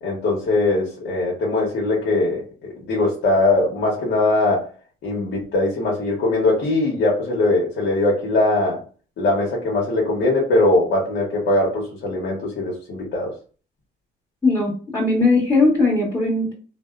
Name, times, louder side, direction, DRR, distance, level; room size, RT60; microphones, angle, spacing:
voice 1, 0.0-2.4 2.9-4.7 5.0-8.8 9.2-13.3, left 2 dB, 70° left, -4 dB, 1.0 m, -21 dB
voice 2, 14.4-16.5, left 3 dB, 10° left, -5 dB, 1.0 m, -19 dB
2.7 x 2.0 x 2.3 m, 0.38 s
cardioid pair, 90°, 20 cm